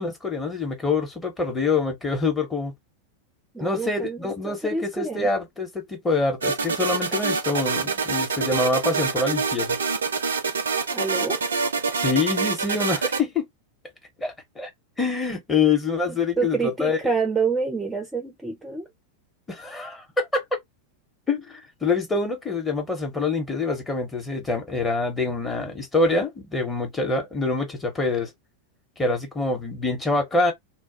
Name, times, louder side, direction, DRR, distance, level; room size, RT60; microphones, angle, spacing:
voice 1, 0.0-2.7 3.6-9.8 12.0-13.4 14.2-14.7 15.0-17.0 19.5-20.6 21.3-28.3 29.0-30.5, left 3 dB, 10° left, 0.9 m, -25 dB
voice 2, 3.5-5.3 10.9-11.4 16.4-18.9, right 4 dB, 10° right, 0.5 m, -27 dB
sound 1, 6.4-13.2, right 4 dB, 70° right, 0.4 m, -26 dB
2.2 x 2.1 x 2.7 m
figure-of-eight pair, 90°, 0 cm